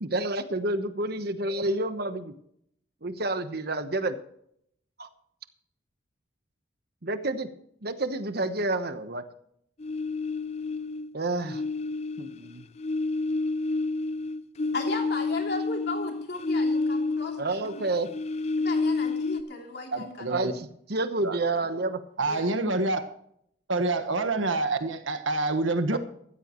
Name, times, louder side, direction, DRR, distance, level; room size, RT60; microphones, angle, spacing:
voice 1, 0.0-2.3 3.0-4.2 5.0-5.1 7.0-7.5 7.8-9.2 11.1-11.6 12.2-12.7 17.4-18.1 20.3-22.0 25.9-26.0, right 2 dB, 55° right, 10 dB, 1.1 m, -29 dB
sound 1, 9.8-11.1 11.4-17.6 17.8-19.4, left 3 dB, 35° left, 0.4 m, -29 dB
voice 2, 14.7-17.8 18.6-20.3 22.3-22.5, left 2 dB, 55° left, 2 dB, 3.1 m, -35 dB
voice 3, 19.9-20.5 21.2-21.4 22.2-23.0 23.7-26.0, right 2 dB, 85° right, 9 dB, 1.5 m, -27 dB
14.5 x 13.5 x 3.1 m, 0.71 s
head